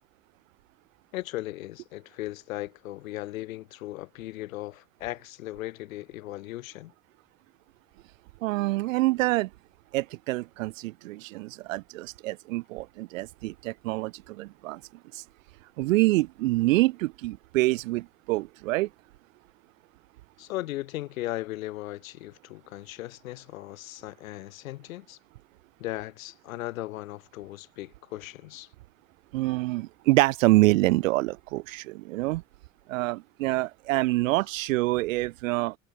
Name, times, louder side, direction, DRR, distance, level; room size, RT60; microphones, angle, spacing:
voice 1, 1.1-6.9 20.4-25.2 25.8-28.7, left 16 dB, 65° left, 2.8 m, -37 dB
voice 2, 8.4-9.5 9.9-14.8 15.1-15.2 15.8-18.9 29.3-32.4 32.9-35.7, right 19 dB, 60° right, 0.7 m, -26 dB
figure-of-eight pair, 65°, 44 cm